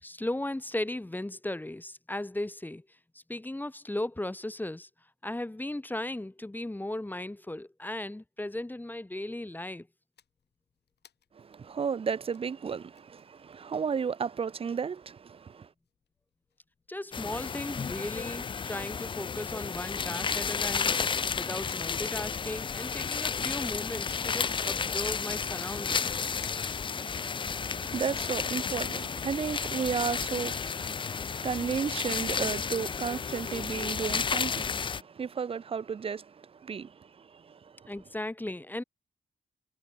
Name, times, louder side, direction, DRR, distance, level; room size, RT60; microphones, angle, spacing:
voice 1, 0.0-2.8 3.3-4.9 5.2-9.9 16.9-26.1 37.9-38.8, left 1 dB, 10° left, 1.2 m, -36 dB
sound 1, 10.1-27.1, left 9 dB, 70° left, 2.1 m, -59 dB
voice 2, 11.3-15.7 26.9-37.9, right 6 dB, 30° right, 0.5 m, -34 dB
sound 2, 17.1-35.0, left 6 dB, 30° left, 0.4 m, -32 dB
cardioid pair, 105°, 18 cm